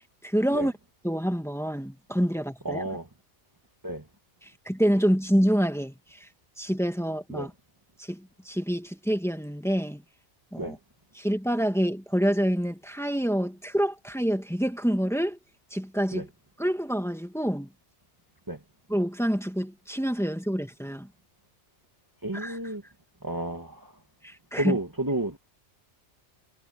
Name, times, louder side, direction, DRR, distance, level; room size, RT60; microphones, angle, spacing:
voice 1, 0.2-0.7 1.0-2.8 4.4-6.3 6.6-7.5 8.0-10.0 10.5-10.8 11.2-15.4 15.7-16.3 16.6-17.7 18.9-21.1 22.3-22.6 24.2-24.8, equal, ahead, 2.2 m, -27 dB
voice 2, 2.6-3.1 3.8-4.0 7.3-7.5 10.6-10.8 16.1-16.2 18.5-18.6 22.2-22.8 23.2-23.9 24.5-25.4, right 1 dB, 15° right, 1.6 m, -31 dB
omnidirectional pair, 1.2 m